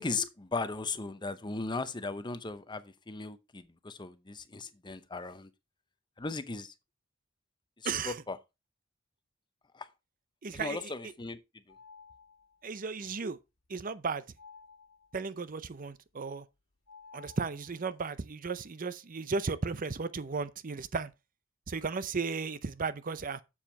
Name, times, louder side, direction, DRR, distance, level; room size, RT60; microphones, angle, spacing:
voice 1, 0.0-5.5 6.2-6.7 7.8-8.4 9.7-9.9 10.5-11.4 11.7-11.8, left 3 dB, 20° left, 0.7 m, -37 dB
voice 2, 10.4-10.8 12.6-13.4 13.7-14.2 15.1-16.4 17.1-21.1 21.7-23.4, right 4 dB, 45° right, 0.6 m, -35 dB
sound 1, 11.7-12.7 14.4-15.4 16.9-18.0, left 5 dB, 85° left, 1.6 m, -55 dB
7.3 x 7.3 x 4.2 m
head